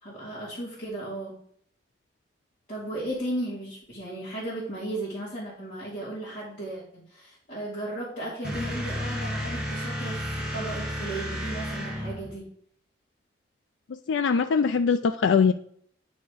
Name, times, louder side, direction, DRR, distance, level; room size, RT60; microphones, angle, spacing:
voice 1, 0.0-1.4 2.7-12.4, right 1 dB, 45° left, -9 dB, 2.5 m, -35 dB
sound 1, 8.4-12.4, equal, 5° right, 1.3 m, -32 dB
voice 2, 14.1-15.5, left 5 dB, 80° left, 9 dB, 0.4 m, -22 dB
9.3 x 4.2 x 5.0 m, 0.64 s
head